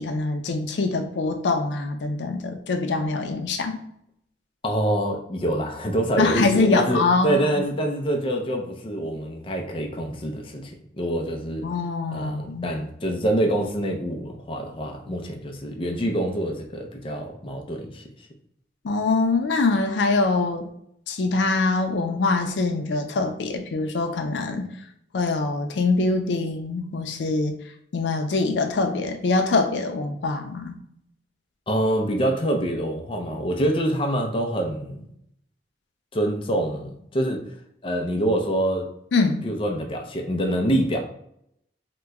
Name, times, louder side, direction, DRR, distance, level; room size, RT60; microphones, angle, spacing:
voice 1, 0.0-3.8 6.2-7.7 11.6-12.7 18.8-20.7 21.1-24.7 25.1-27.5 27.9-30.8 39.1-39.5, left 3 dB, 90° left, 5 dB, 0.4 m, -24 dB
voice 2, 4.6-11.6 12.1-18.3 31.7-35.1 36.1-37.5 37.8-38.9 39.4-41.0, right 1 dB, 30° left, 2 dB, 0.5 m, -26 dB
2.9 x 2.2 x 3.5 m, 0.73 s
head